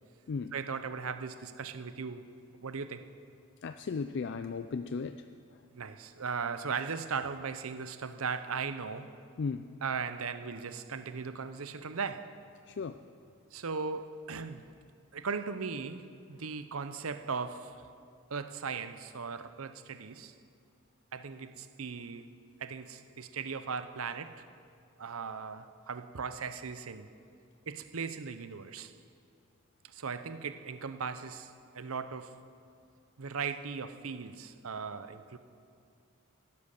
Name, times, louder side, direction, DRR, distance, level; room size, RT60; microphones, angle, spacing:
voice 1, 0.5-2.3 2.6-3.1 5.7-9.1 9.8-12.4 13.5-14.7 15.1-17.9 18.3-20.3 21.1-22.3 22.6-24.5 25.0-27.1 27.7-28.9 29.8-32.4 33.2-35.4, right 5 dB, 80° right, 11 dB, 0.7 m, -38 dB
voice 2, 3.6-5.2 9.4-9.6 12.7-13.0, left 5 dB, 55° left, 10 dB, 0.4 m, -35 dB
16.0 x 11.0 x 6.6 m, 2.3 s
head